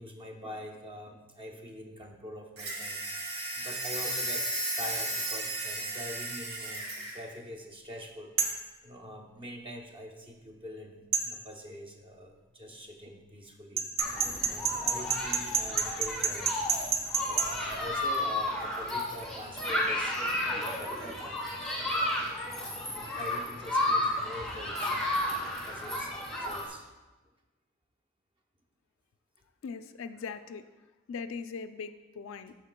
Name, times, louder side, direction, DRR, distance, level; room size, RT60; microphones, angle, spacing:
voice 1, 0.0-3.2 3.6-4.5 4.8-8.3 8.8-13.9 14.5-16.7 17.3-21.6 22.4-26.9, left 1 dB, 25° right, 2 dB, 0.7 m, -44 dB
sound 1, 2.6-7.2, right 2 dB, 85° right, 1.4 m, -34 dB
sound 2, 8.4-8.6 11.1-11.3 13.8-17.5, right 6 dB, 70° right, 0.9 m, -28 dB
Human group actions, 14.0-26.7, left 1 dB, 5° left, 1.0 m, -32 dB
voice 2, 29.6-30.6 31.1-32.5, left 5 dB, 65° left, 11 dB, 0.3 m, -40 dB
12.0 x 4.6 x 2.2 m, 1.1 s
head